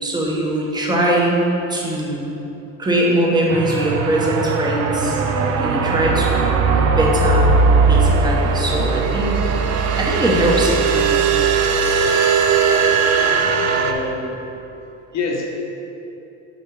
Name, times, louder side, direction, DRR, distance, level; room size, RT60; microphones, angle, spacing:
voice 1, 0.0-1.3 1.7-2.4 2.8-5.2 5.6-7.5 7.9-9.3 10.0-11.3, right 1 dB, 10° right, -3 dB, 1.2 m, -21 dB
sound 1, 3.5-13.9, right 4 dB, 45° right, 0.6 m, -18 dB
voice 2, 13.1-14.5 15.1-15.5, left 4 dB, 50° left, -1 dB, 1.4 m, -28 dB
6.5 x 5.6 x 4.9 m, 2.9 s
cardioid pair, 130°, 34 cm